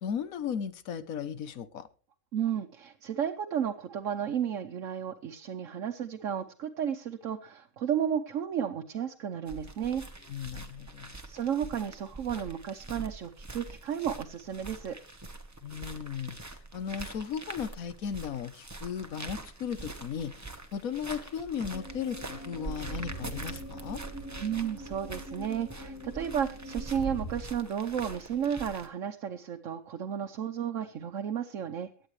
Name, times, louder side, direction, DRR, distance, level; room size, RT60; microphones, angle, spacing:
voice 1, 0.0-1.9 10.3-11.1 15.6-24.0, left 7 dB, 80° left, 14 dB, 1.3 m, -36 dB
voice 2, 2.3-10.0 11.3-15.0 24.4-31.9, right 8 dB, 65° right, 4 dB, 1.2 m, -33 dB
sound 1, 9.5-28.9, right 2 dB, 15° right, 1.0 m, -44 dB
sound 2, 21.6-27.4, right 1 dB, 55° left, 4.6 m, -42 dB
22.5 x 9.0 x 3.2 m, 0.38 s
omnidirectional pair, 1.4 m